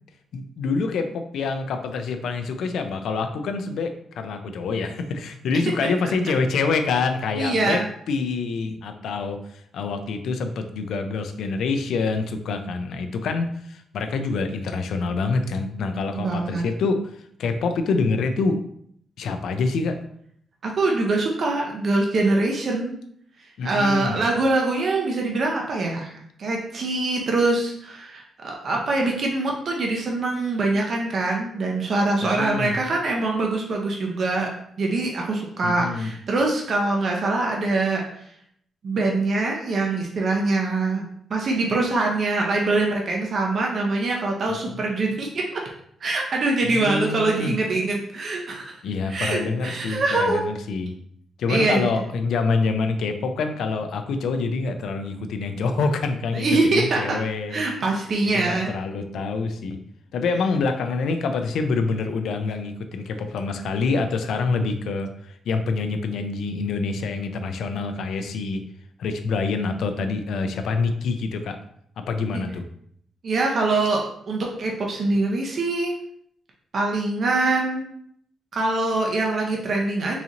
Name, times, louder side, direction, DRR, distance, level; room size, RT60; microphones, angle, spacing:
voice 1, 0.3-7.8 8.1-18.6 19.2-20.0 23.6-24.2 32.2-32.8 35.6-36.1 44.5-44.9 46.6-47.6 48.8-50.9 51.4-57.6 58.2-59.8 60.1-68.6 69.0-71.6 72.0-72.6, left 4 dB, 75° left, 7 dB, 0.4 m, -26 dB
voice 2, 7.4-7.9 16.1-16.7 20.6-23.0 23.6-26.1 26.4-34.5 34.8-38.0 38.8-41.0 41.3-45.6 46.0-48.7 49.1-50.5 51.5-51.9 56.3-57.2 57.5-58.7 72.3-72.4 73.2-75.9 76.7-77.9 78.5-80.2, right 2 dB, 45° right, 0 dB, 0.6 m, -23 dB
3.9 x 2.9 x 2.5 m, 0.68 s
cardioid pair, 140°, 0 cm